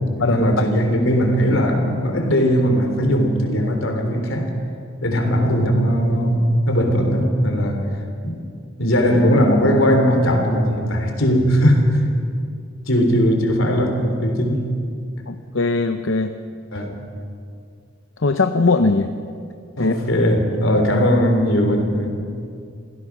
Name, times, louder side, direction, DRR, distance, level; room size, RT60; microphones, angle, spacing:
voice 1, 0.1-4.5 5.0-7.9 8.2-8.4 8.8-12.0 12.9-14.7 16.7-17.0 19.8-22.1, equal, 90° left, 4 dB, 3.5 m, -18 dB
voice 2, 15.3-16.3 18.2-19.1 19.8-19.9, left 3 dB, 70° left, 7 dB, 0.8 m, -19 dB
27.0 x 16.0 x 6.1 m, 2.4 s
head